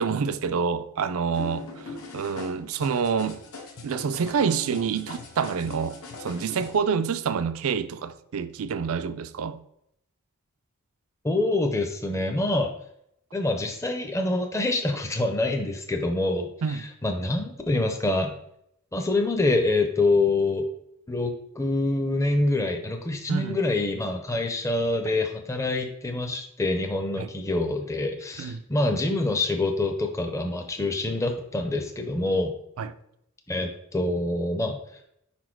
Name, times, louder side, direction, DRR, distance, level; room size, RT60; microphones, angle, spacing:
voice 1, 0.0-1.7 2.1-3.4 3.8-9.6 16.6-16.9 23.3-23.6 27.2-27.3 28.4-28.6 32.8-32.9, right 6 dB, 70° right, 0.4 m, -27 dB
sound 1, 1.3-6.8, left 3 dB, 75° left, 0.9 m, -41 dB
voice 2, 11.2-12.7 13.3-18.4 18.9-20.7 21.1-32.5 33.5-34.8, left 2 dB, 15° left, 0.5 m, -26 dB
5.1 x 4.2 x 4.5 m
head